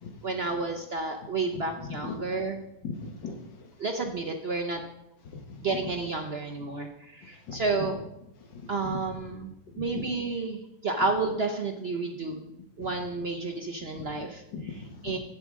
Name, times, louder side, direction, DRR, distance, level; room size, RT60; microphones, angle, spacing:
voice 1, 0.2-2.6 3.8-4.8 5.6-8.0 8.7-12.4 12.8-14.4 15.0-15.2, right 3 dB, 50° right, 4 dB, 0.7 m, -31 dB
voice 2, 1.5-2.2 2.8-3.7 5.3-5.6 7.5-7.9 8.5-9.0 9.7-10.0 12.8-12.9 13.9-14.3 14.5-15.2, left 5 dB, 85° left, 4 dB, 1.9 m, -39 dB
11.5 x 8.4 x 3.6 m, 0.86 s
omnidirectional pair, 1.9 m